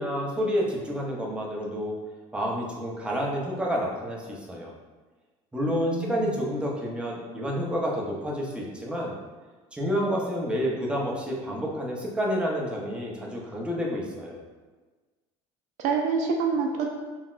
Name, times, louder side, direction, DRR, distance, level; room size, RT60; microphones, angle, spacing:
voice 1, 0.0-1.9 2.3-4.7 5.5-9.2 9.7-14.4, equal, 5° right, -3 dB, 0.7 m, -29 dB
voice 2, 5.7-6.4 15.8-16.9, right 5 dB, 60° right, 2 dB, 0.4 m, -27 dB
3.8 x 2.1 x 2.4 m, 1.3 s
supercardioid pair, 95°, 14 cm